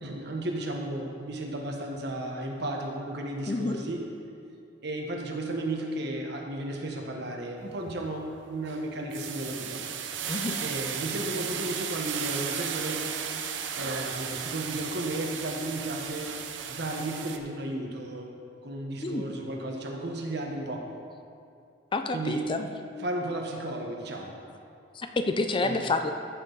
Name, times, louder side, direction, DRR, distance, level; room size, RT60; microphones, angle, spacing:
voice 1, 0.0-4.0 4.8-9.8 10.6-13.1 13.8-16.3 16.7-18.3 18.6-20.9 22.1-22.5 23.0-24.3 25.6-25.8, right 1 dB, 65° right, 1 dB, 1.3 m, -34 dB
voice 2, 3.5-3.8 10.3-10.6 19.0-19.2 21.9-22.7 24.9-26.1, left 3 dB, 30° left, 7 dB, 0.4 m, -28 dB
sound 1, 7.6-7.9 8.3-17.4, right 7 dB, 85° right, 0.7 m, -35 dB
14.0 x 6.3 x 4.0 m, 2.5 s
head